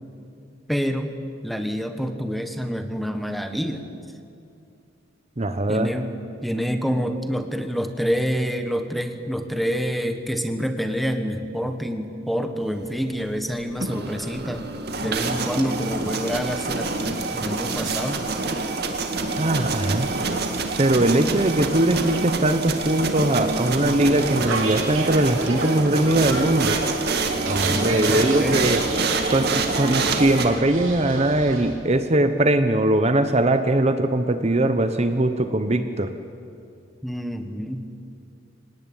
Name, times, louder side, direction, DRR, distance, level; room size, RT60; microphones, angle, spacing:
voice 1, 0.7-1.1 1.4-3.8 5.7-6.1 6.4-14.6 15.0-18.2 23.8-24.0 27.7-28.7 37.0-37.9, equal, ahead, 7 dB, 1.4 m, -27 dB
voice 2, 5.4-5.9 19.4-20.1 20.8-26.8 27.4-28.8 29.3-36.1, right 1 dB, 30° right, 9 dB, 1.0 m, -21 dB
sound 1, 13.6-30.5, right 3 dB, 55° right, 2.2 m, -26 dB
sound 2, 23.9-31.8, right 3 dB, 90° right, 4.1 m, -32 dB
25.5 x 19.0 x 9.1 m, 2.5 s
head